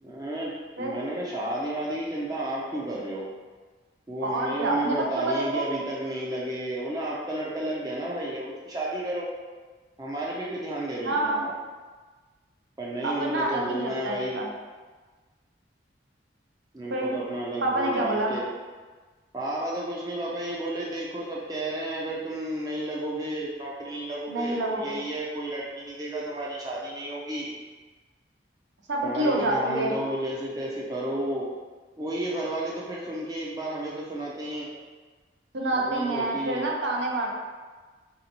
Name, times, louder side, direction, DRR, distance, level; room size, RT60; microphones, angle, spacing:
voice 1, 0.0-3.3 4.1-9.3 10.0-11.5 12.8-14.4 16.7-18.5 19.3-27.5 29.0-31.5 32.0-34.7 35.7-36.7, right 1 dB, 20° right, -5 dB, 0.5 m, -32 dB
voice 2, 4.2-5.7 11.0-11.4 13.0-14.5 16.9-17.2 17.6-18.4 24.3-25.0 28.9-30.0 35.5-37.3, right 1 dB, 75° right, -1 dB, 0.6 m, -27 dB
4.3 x 2.7 x 2.8 m, 1.4 s
head